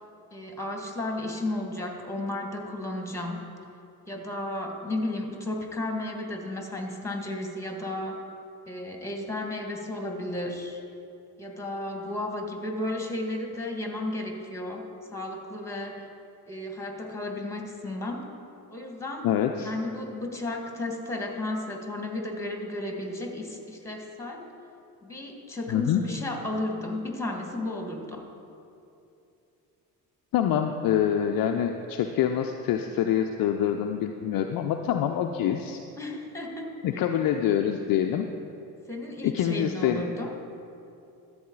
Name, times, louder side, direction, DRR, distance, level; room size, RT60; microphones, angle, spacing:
voice 1, 0.3-3.5 4.1-8.2 8.7-10.8 11.4-16.0 16.5-18.3 18.7-19.3 19.6-24.4 25.0-28.3 36.0-37.0 38.9-40.3, left 2 dB, 5° left, 3 dB, 1.8 m, -33 dB
voice 2, 19.2-19.7 25.7-26.0 30.3-35.8 36.8-38.3 39.2-40.1, left 9 dB, 45° left, 4 dB, 0.6 m, -25 dB
13.0 x 7.9 x 3.9 m, 2.7 s
hypercardioid pair, 55°, 49 cm